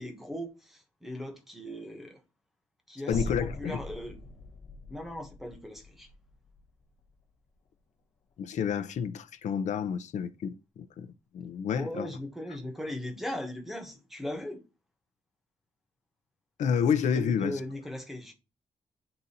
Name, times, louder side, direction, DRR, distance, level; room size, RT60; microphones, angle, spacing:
voice 1, 0.0-2.2 2.9-3.3 3.6-4.2 4.9-6.1 11.7-14.6 17.1-18.3, left 1 dB, ahead, 1.0 m, -38 dB
voice 2, 3.1-3.8 8.4-11.1 11.3-12.1 16.6-17.6, left 7 dB, 80° left, 0.6 m, -29 dB
sound 1, 3.1-7.3, left 2 dB, 50° left, 0.9 m, -41 dB
9.7 x 3.9 x 2.8 m
wide cardioid pair, 175°, 12 cm